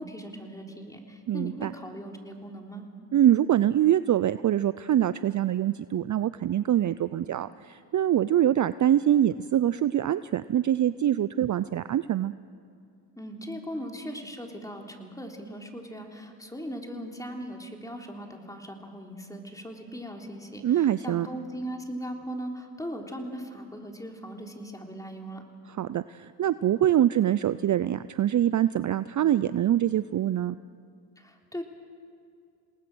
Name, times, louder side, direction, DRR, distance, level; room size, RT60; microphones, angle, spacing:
voice 1, 0.0-2.9 13.2-25.4 31.2-31.6, equal, 5° left, 1 dB, 3.6 m, -39 dB
voice 2, 1.3-1.7 3.1-12.3 20.6-21.3 25.7-30.5, right 11 dB, 40° right, 15 dB, 0.5 m, -24 dB
28.5 x 19.0 x 6.2 m, 2.4 s
supercardioid pair, 70°, 46 cm